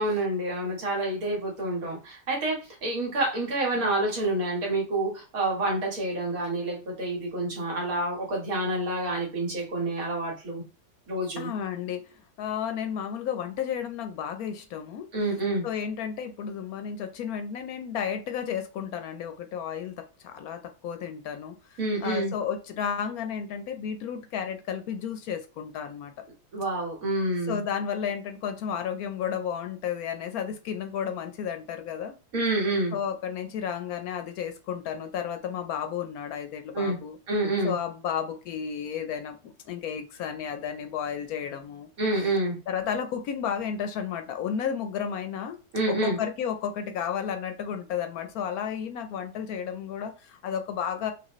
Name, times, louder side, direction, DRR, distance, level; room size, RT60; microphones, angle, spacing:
voice 1, 0.0-10.6 11.1-11.5 15.1-15.6 21.8-22.3 26.5-27.6 32.3-32.9 36.7-37.0 37.3-37.7 42.0-42.6 45.7-46.2, right 2 dB, 60° right, -1 dB, 1.9 m, -28 dB
voice 2, 11.4-12.1 12.4-15.1 15.4-26.2 27.5-32.1 32.9-37.2 37.6-41.9 42.2-42.3 42.7-45.6 45.9-51.1, left 8 dB, 70° left, 8 dB, 1.0 m, -32 dB
6.0 x 2.5 x 3.0 m, 0.32 s
omnidirectional pair, 1.7 m